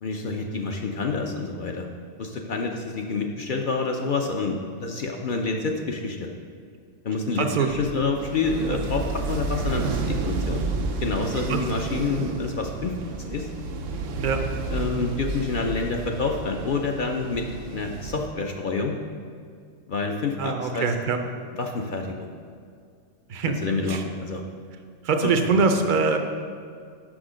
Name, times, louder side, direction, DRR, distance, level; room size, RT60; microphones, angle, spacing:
voice 1, 0.0-1.9 2.2-6.3 7.0-10.6 11.0-13.5 14.7-19.0 19.9-20.9 21.5-22.3 23.6-24.4 25.2-25.3, left 4 dB, 55° left, 2 dB, 0.6 m, -28 dB
voice 2, 7.4-7.7 8.7-8.8 11.5-11.6 14.2-14.4 20.4-21.2 23.3-23.6 23.9-24.0 25.0-26.2, right 4 dB, 55° right, 6 dB, 0.6 m, -23 dB
sound 1, 7.7-18.3, right 3 dB, 85° right, 1.0 m, -31 dB
6.2 x 6.0 x 4.9 m, 2.2 s
omnidirectional pair, 1.3 m